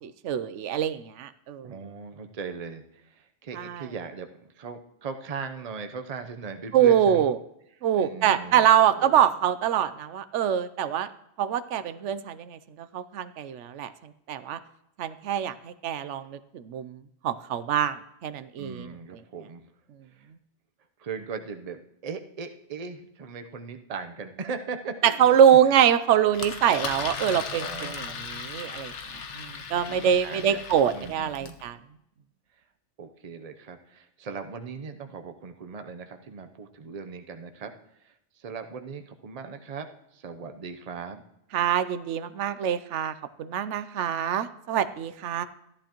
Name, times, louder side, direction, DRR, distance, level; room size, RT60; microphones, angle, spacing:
voice 1, 0.0-1.7 3.5-3.9 6.7-7.4 7.8-11.1 11.4-14.6 15.0-17.0 17.2-18.0 18.2-18.9 25.0-28.9 29.4-31.8 41.5-45.4, right 9 dB, 85° right, 13 dB, 0.9 m, -24 dB
voice 2, 1.6-7.3 8.0-8.7 9.0-9.2 18.6-19.7 20.2-20.3 21.0-25.2 27.6-28.1 29.8-30.6 30.9-31.6 33.0-37.7 38.0-39.9 40.1-41.2, right 5 dB, 40° right, 7 dB, 0.8 m, -39 dB
Engine, 26.3-31.6, left 5 dB, 85° left, 1.2 m, -37 dB
13.5 x 11.0 x 3.0 m, 0.81 s
omnidirectional pair, 1.2 m